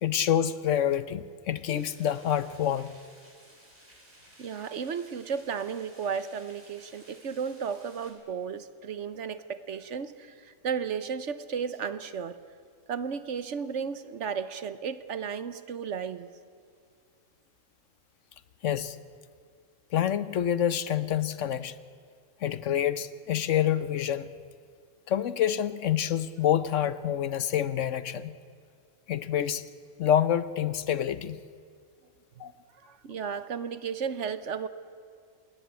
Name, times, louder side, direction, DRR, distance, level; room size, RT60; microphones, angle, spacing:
voice 1, 0.0-2.9 18.6-19.0 19.9-21.7 22.4-24.3 25.1-28.3 29.1-29.6 30.0-31.4 32.4-32.5, left 10 dB, 70° left, 13 dB, 1.1 m, -27 dB
sound 1, 1.7-8.1, right 1 dB, 30° right, 5.2 m, -56 dB
voice 2, 4.4-12.4 12.9-16.3 32.9-34.7, right 6 dB, 65° right, 12 dB, 1.2 m, -34 dB
27.5 x 21.0 x 8.3 m, 2.1 s
omnidirectional pair, 1.4 m